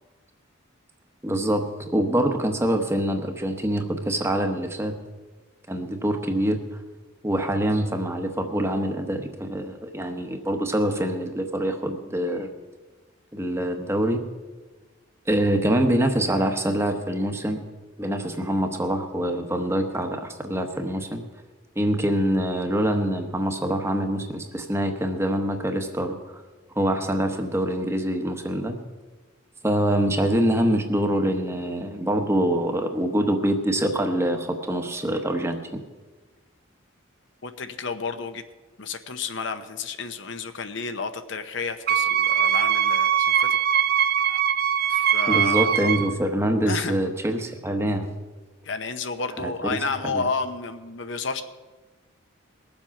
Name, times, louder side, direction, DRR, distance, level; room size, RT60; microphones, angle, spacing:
voice 1, 1.2-4.9 5.7-6.8 7.2-12.5 13.3-14.2 15.3-17.6 18.0-21.2 21.8-26.4 26.7-28.7 29.6-35.8 45.3-48.1 49.4-49.8 50.1-50.2, right 1 dB, 15° right, 5 dB, 1.0 m, -25 dB
voice 2, 37.4-38.4 38.8-43.5 44.9-45.7 46.6-46.9 48.6-51.4, left 4 dB, 60° left, 9 dB, 0.8 m, -31 dB
Wind instrument woodwind instrument, 41.9-46.2, right 9 dB, 45° right, 0.6 m, -21 dB
20.0 x 7.5 x 5.8 m, 1.3 s
head